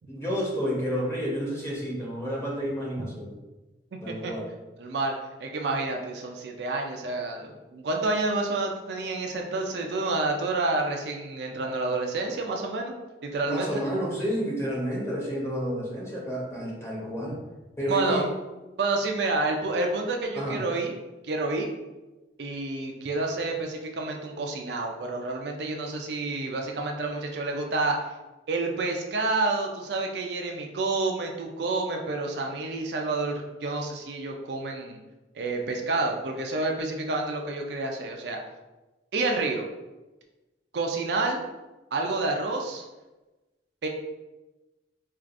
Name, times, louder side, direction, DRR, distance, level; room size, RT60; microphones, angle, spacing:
voice 1, 0.1-3.3 4.0-4.4 13.4-17.4 17.8-18.2 20.3-20.6, equal, 15° left, -4 dB, 0.9 m, -30 dB
voice 2, 4.8-5.1 5.4-12.9 13.2-13.7 17.9-18.2 18.8-21.0 21.2-21.7 22.4-28.0 28.5-35.0 35.4-38.4 39.1-39.6 40.7-41.4 41.9-42.9 43.8-43.9, right 3 dB, 65° right, 2 dB, 0.4 m, -29 dB
4.5 x 2.4 x 2.5 m, 1.1 s
head